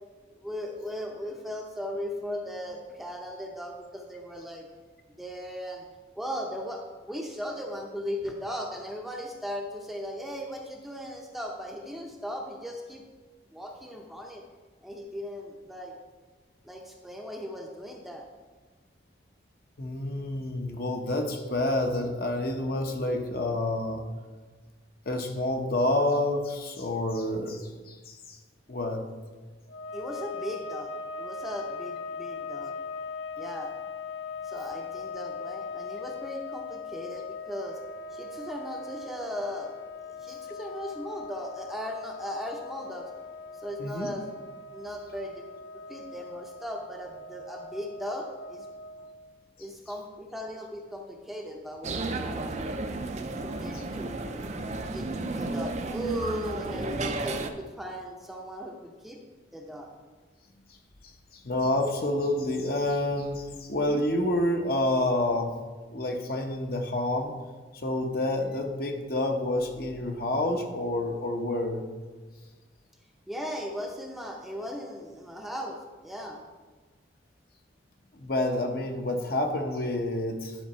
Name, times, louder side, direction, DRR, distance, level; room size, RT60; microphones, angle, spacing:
voice 1, 0.3-4.7 5.1-5.8 6.2-13.0 13.5-14.4 14.8-15.9 16.6-18.3 29.9-30.9 31.2-32.8 33.4-33.7 34.4-37.8 38.1-39.7 40.0-43.1 43.6-44.3 44.7-45.4 45.9-48.7 49.6-52.8 53.4-54.5 54.8-59.2 59.5-59.9 73.3-76.4, equal, ahead, 0 dB, 0.6 m, -37 dB
voice 2, 19.8-24.0 25.1-28.4 28.7-29.0 43.8-44.1 53.7-53.8 61.3-65.5 65.9-67.3 67.8-71.8 78.1-80.6, left 1 dB, 50° left, 3 dB, 0.9 m, -28 dB
sound 1, 29.7-49.3, left 4 dB, 80° left, 0.5 m, -40 dB
sound 2, 51.8-57.5, right 2 dB, 35° right, 0.5 m, -33 dB
10.5 x 4.1 x 5.6 m, 1.4 s
head